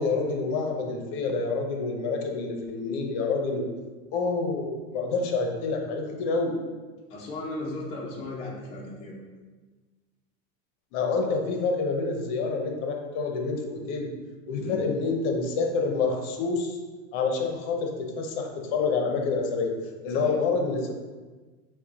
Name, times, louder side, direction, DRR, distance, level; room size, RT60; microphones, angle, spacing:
voice 1, 0.0-3.6 4.1-6.5 10.9-14.1 14.5-16.8 17.1-19.7 20.0-20.9, left 4 dB, 50° left, 3 dB, 0.7 m, -27 dB
voice 2, 7.1-9.2 14.6-14.9 20.1-20.3, left 2 dB, 15° left, -4 dB, 0.4 m, -36 dB
5.6 x 2.2 x 3.9 m, 1.3 s
supercardioid pair, 155°, 39 cm